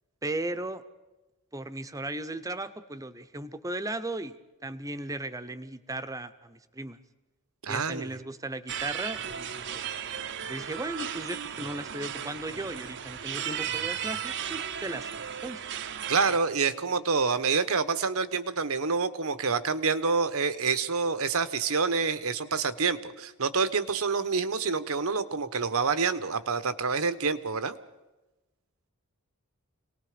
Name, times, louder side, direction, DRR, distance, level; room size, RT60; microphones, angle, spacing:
voice 1, 0.2-0.8 1.5-4.4 4.6-7.0 7.7-9.7 10.5-15.1 15.4-15.6, right 2 dB, 15° right, 11 dB, 0.8 m, -36 dB
voice 2, 7.6-8.2 16.1-27.7, right 5 dB, 70° right, 13 dB, 1.1 m, -27 dB
sound 1, 8.7-16.4, right 8 dB, 55° right, 0.8 m, -35 dB
27.0 x 19.0 x 5.1 m, 1.1 s
head